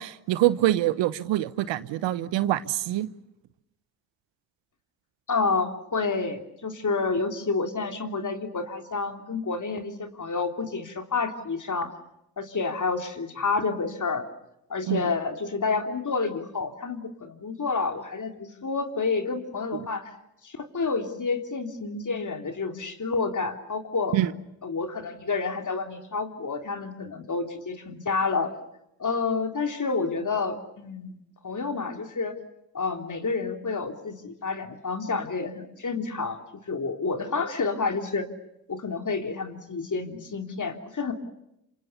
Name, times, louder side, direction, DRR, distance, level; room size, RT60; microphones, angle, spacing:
voice 1, 0.0-3.1 14.9-15.0 24.1-24.3, right 14 dB, 75° right, 1.1 m, -25 dB
voice 2, 5.3-11.9 12.4-14.2 14.7-20.1 20.4-24.2 24.6-28.5 29.0-31.1 31.4-32.4 32.7-36.4 36.7-38.3 38.7-41.1, left 4 dB, 40° left, 3.5 m, -29 dB
27.0 x 26.0 x 7.0 m
hypercardioid pair, 45°, 45 cm